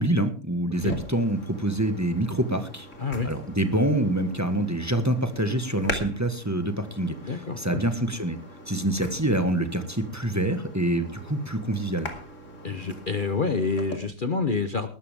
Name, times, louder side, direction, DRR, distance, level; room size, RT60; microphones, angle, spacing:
voice 1, 0.0-2.9 3.2-8.4 8.7-12.1, right 1 dB, 10° right, 8 dB, 1.6 m, -26 dB
sound 1, 0.7-14.0, left 1 dB, 60° left, 3.0 m, -41 dB
voice 2, 3.0-3.3 7.2-7.8 12.6-14.9, left 4 dB, 40° left, 9 dB, 1.1 m, -27 dB
19.5 x 13.0 x 3.6 m, 0.35 s
omnidirectional pair, 1.5 m